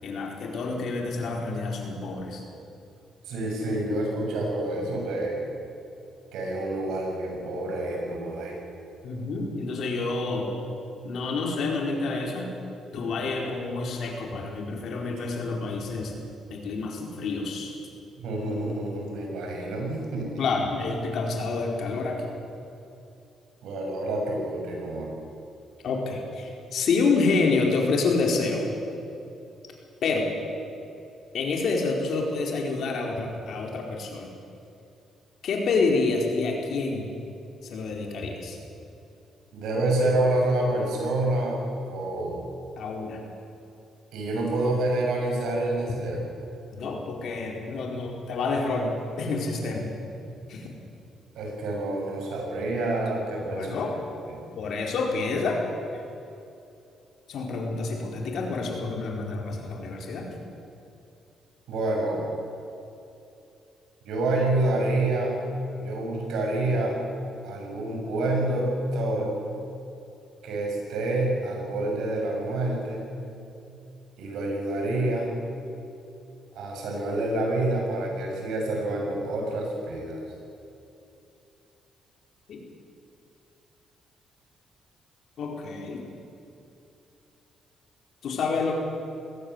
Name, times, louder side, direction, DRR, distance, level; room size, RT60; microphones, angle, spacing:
voice 1, 0.0-2.4 9.0-10.6 11.0-12.5 12.9-16.2 16.5-17.8 20.4-22.2 25.8-28.7 30.0-30.3 31.3-34.3 35.4-37.1 37.7-38.6 42.8-43.2 46.7-49.9 50.5-50.7 53.5-53.9 54.6-55.6 55.9-56.0 57.3-60.3 82.5-82.6 85.4-86.1 88.2-88.7, left 3 dB, 70° left, 1 dB, 4.5 m, -28 dB
voice 2, 3.3-5.4 6.3-8.6 18.2-20.4 23.6-25.1 39.5-42.4 44.1-46.2 51.3-54.0 54.3-54.4 61.7-62.3 64.0-65.4 65.8-67.0 67.4-69.4 70.4-73.1 74.2-75.3 76.5-80.2, right 2 dB, 80° right, 0 dB, 6.7 m, -28 dB
20.5 x 17.5 x 8.1 m, 2.8 s
cardioid pair, 90°, 0 cm